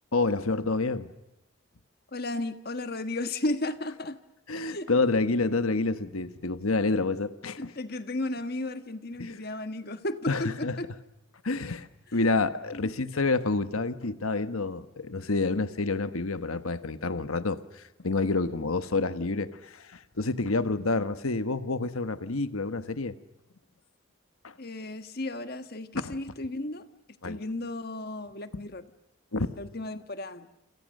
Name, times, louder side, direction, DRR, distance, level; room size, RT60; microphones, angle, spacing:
voice 1, 0.1-1.1 4.5-7.7 9.2-9.3 10.3-10.8 11.4-23.1 24.4-24.5 26.0-26.2 27.2-27.4 29.3-29.5, left 3 dB, 85° left, 11 dB, 1.3 m, -28 dB
voice 2, 2.1-4.2 4.6-4.9 7.6-10.9 12.7-12.9 24.6-26.9 27.2-28.8 29.6-30.5, left 2 dB, 45° left, 9 dB, 1.5 m, -34 dB
28.0 x 28.0 x 6.6 m, 0.90 s
head